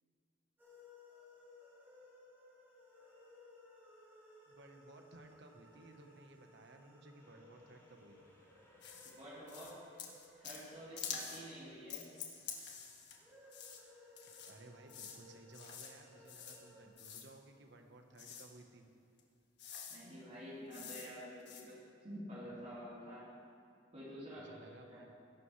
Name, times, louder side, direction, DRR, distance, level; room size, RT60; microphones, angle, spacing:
sound 1, 0.6-12.3 13.1-16.9, left 2 dB, 10° right, 3.2 m, -62 dB
voice 1, 4.5-8.2 14.4-18.8 22.4-22.7 24.4-25.1, right 2 dB, 65° right, 4 dB, 1.4 m, -58 dB
Train, 7.2-12.5, equal, 20° left, 4.1 m, -67 dB
sound 2, 8.8-9.1 9.5-9.7 10.0-10.7 11.0-11.4 11.9-13.2 13.5-13.8 14.2-14.5 14.9-15.2 15.5-15.9 16.3-16.6 17.0-17.3 18.2-18.5 19.2-19.3 19.6-20.0 20.7-21.1 21.4-21.6, left 7 dB, 65° left, 1.7 m, -47 dB
voice 2, 9.2-9.8 10.4-12.0 19.9-23.3 23.9-25.0, equal, 40° right, -11 dB, 4.1 m, -49 dB
21.0 x 11.5 x 3.4 m, 2.4 s
head